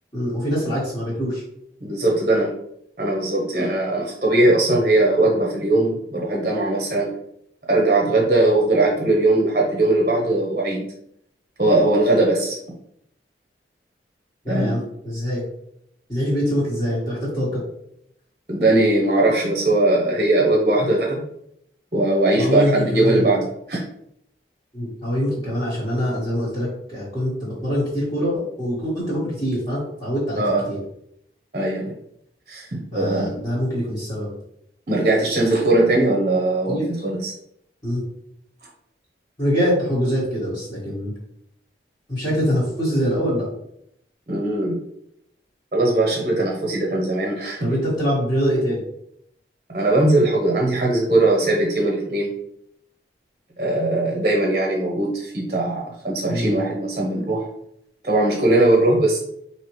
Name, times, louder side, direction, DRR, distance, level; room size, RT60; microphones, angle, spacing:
voice 1, 0.1-1.4 14.4-15.4 16.1-17.6 22.4-23.3 24.7-30.4 30.7-30.8 32.9-34.3 36.7-36.9 37.8-38.0 39.4-41.1 42.1-43.5 47.6-48.8 56.3-56.6, equal, 25° left, -9 dB, 1.4 m, -24 dB
voice 2, 1.8-2.5 3.0-7.1 7.7-10.9 11.6-12.6 14.5-14.7 18.5-21.2 21.9-23.8 30.4-30.6 31.5-31.9 32.5-33.3 34.9-37.3 44.3-44.8 45.7-47.7 49.7-52.3 53.6-57.5 58.0-59.2, right 2 dB, 40° right, -1 dB, 0.8 m, -20 dB
4.6 x 2.9 x 3.1 m, 0.74 s
head